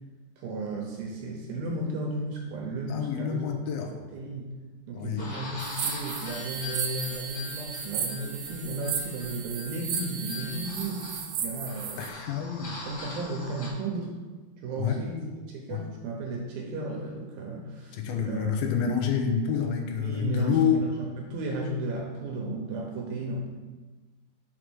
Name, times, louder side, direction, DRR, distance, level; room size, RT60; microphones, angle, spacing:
voice 1, 0.4-4.5 4.9-12.0 12.7-14.2 14.6-15.2 15.5-18.6 18.8-18.9 20.0-23.5, right 2 dB, 75° right, -1 dB, 2.5 m, -34 dB
voice 2, 2.9-3.9 4.9-5.3 12.0-12.8 14.8-15.0 15.7-15.8 17.9-20.9, left 7 dB, 75° left, 4 dB, 2.4 m, -28 dB
several different sound toys panning around my recorder, 5.2-13.7, left 1 dB, 25° left, 1.1 m, -41 dB
sound 1, 5.6-12.1, right 7 dB, 90° right, 3.0 m, -35 dB
6.2 x 4.9 x 6.2 m, 1.3 s
omnidirectional pair, 4.6 m